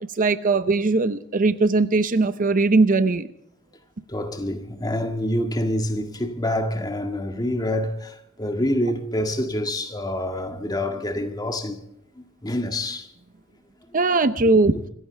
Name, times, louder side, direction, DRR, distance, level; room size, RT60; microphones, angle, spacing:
voice 1, 0.1-3.3 13.9-14.7, right 3 dB, 40° right, 0.7 m, -19 dB
voice 2, 4.1-11.8 12.2-13.1 13.9-14.0, left 1 dB, 20° left, 1.8 m, -27 dB
26.5 x 15.0 x 3.4 m
head